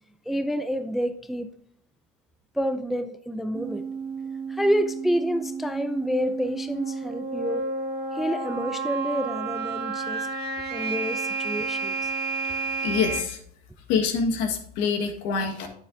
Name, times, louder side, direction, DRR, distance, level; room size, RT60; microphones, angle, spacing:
voice 1, 0.3-1.5 2.5-3.9 4.5-7.7 8.1-10.3 10.7-12.1, equal, ahead, 10 dB, 0.4 m, -28 dB
sound 1, 3.5-13.2, right 4 dB, 50° right, 1.5 m, -31 dB
voice 2, 12.8-13.4 13.9-15.7, left 5 dB, 60° left, 5 dB, 1.4 m, -25 dB
8.6 x 7.8 x 2.6 m, 0.66 s
supercardioid pair, 95°, 21 cm